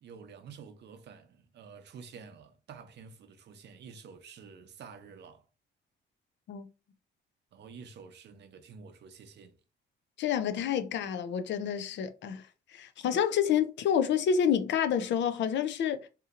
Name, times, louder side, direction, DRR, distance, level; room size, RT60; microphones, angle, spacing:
voice 1, 0.0-5.5 7.5-9.6, right 6 dB, 60° right, 0.6 m, -49 dB
voice 2, 10.2-12.5 12.7-16.1, left 8 dB, 65° left, 0.4 m, -28 dB
2.8 x 2.7 x 2.4 m
cardioid pair, 90°, 20 cm